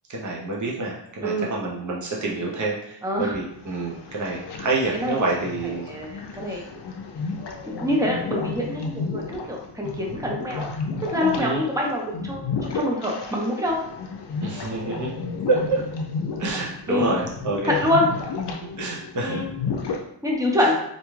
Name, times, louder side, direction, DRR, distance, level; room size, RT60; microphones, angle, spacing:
voice 1, 0.1-5.9 6.5-6.6 11.4-11.6 14.4-15.8 16.4-17.8 18.8-19.4, right 2 dB, 45° right, -3 dB, 0.7 m, -27 dB
voice 2, 3.0-3.4 4.9-5.2 5.6-6.6 7.7-10.7 11.1-12.5 12.7-13.8 16.9-17.1 17.7-18.1 19.2-19.5 20.2-20.7, left 1 dB, 10° right, -2 dB, 0.6 m, -25 dB
sound 1, 3.5-20.0, left 4 dB, 70° left, 0.5 m, -33 dB
2.5 x 2.3 x 3.0 m, 0.75 s
wide cardioid pair, 85°, 42 cm